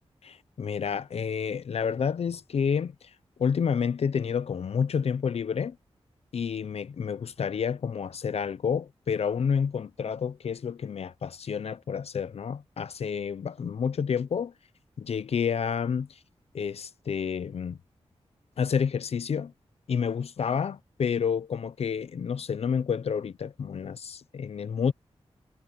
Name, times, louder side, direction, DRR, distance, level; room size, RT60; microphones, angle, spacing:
voice 1, 0.2-2.9 3.4-5.8 6.3-14.5 15.0-16.2 16.5-17.8 18.6-19.5 19.9-24.9, left 6 dB, 70° left, 0.6 m, -29 dB
wide cardioid pair, 150°, 11 cm